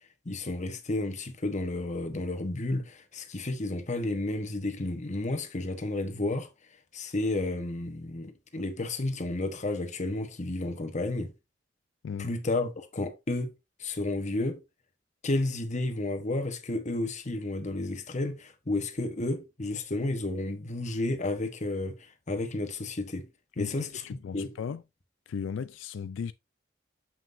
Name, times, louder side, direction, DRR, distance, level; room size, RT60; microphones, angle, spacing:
voice 1, 0.2-6.5 6.9-11.3 12.2-13.5 13.8-14.6 15.2-23.3 23.6-24.5, left 2 dB, 40° left, 1.1 m, -32 dB
voice 2, 23.6-24.8 25.3-26.3, left 6 dB, 85° left, 0.4 m, -36 dB
7.2 x 5.9 x 2.6 m
head